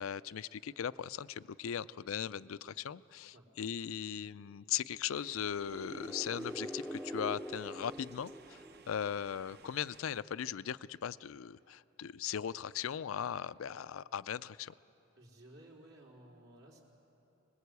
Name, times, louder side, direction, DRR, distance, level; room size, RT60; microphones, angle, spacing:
voice 1, 0.0-14.7, left 8 dB, 75° left, 16 dB, 0.4 m, -38 dB
sound 1, 5.1-10.2, right 5 dB, 50° right, 0.8 m, -59 dB
sound 2, 5.5-9.3, equal, 5° right, 0.5 m, -44 dB
voice 2, 15.2-16.8, right 1 dB, 80° right, -2 dB, 4.2 m, -56 dB
25.0 x 20.0 x 8.3 m, 3.0 s
head